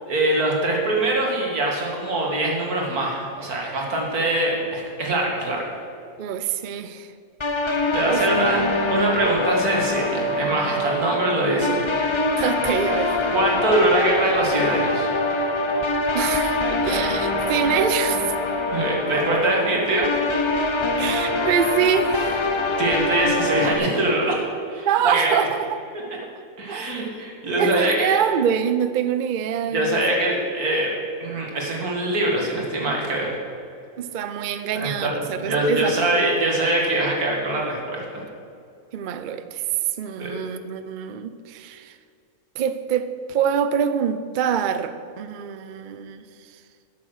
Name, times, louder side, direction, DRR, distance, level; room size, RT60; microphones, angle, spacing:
voice 1, 0.1-5.7 7.9-8.6 8.9-11.8 13.3-15.1 18.7-20.1 22.8-24.4 24.7-25.3 26.6-28.2 29.7-30.9 31.2-33.3 34.7-38.2 40.2-40.3, right 1 dB, 85° right, -1 dB, 2.5 m, -23 dB
voice 2, 6.2-7.1 8.1-8.3 12.4-13.2 16.1-18.3 21.0-22.4 24.8-25.8 26.2-26.3 26.7-27.0 27.6-30.0 34.0-36.3 38.9-39.6 40.0-41.9 42.6-46.3, right 8 dB, 65° right, 11 dB, 0.5 m, -25 dB
sound 1, 7.4-23.8, left 2 dB, 30° left, 0.6 m, -24 dB
12.5 x 7.1 x 6.4 m, 2.4 s
omnidirectional pair, 1.5 m